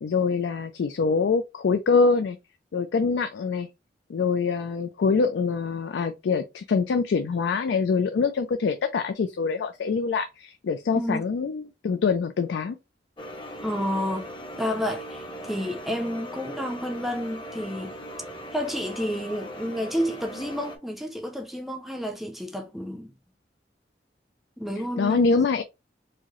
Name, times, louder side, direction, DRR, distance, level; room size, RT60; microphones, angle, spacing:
voice 1, 0.0-2.4 2.7-3.7 4.1-12.8 25.0-25.6, left 5 dB, 80° left, 0.4 m, -24 dB
voice 2, 10.9-11.2 13.6-17.9 18.5-23.1 24.6-25.3, equal, ahead, 0.4 m, -30 dB
sound 1, 13.2-20.8, equal, 30° left, 0.8 m, -39 dB
4.7 x 2.0 x 2.9 m
head